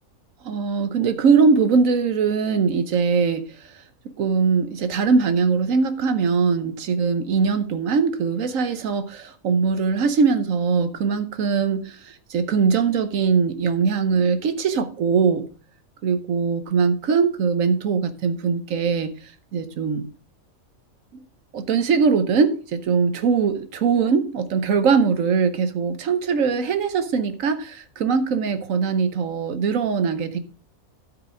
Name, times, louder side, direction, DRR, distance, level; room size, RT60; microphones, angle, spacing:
voice 1, 0.4-3.7 4.2-15.5 16.0-19.2 19.5-20.1 21.1-21.2 21.5-30.4, right 5 dB, 70° right, 1.2 m, -21 dB
13.0 x 5.1 x 4.8 m
omnidirectional pair, 1.5 m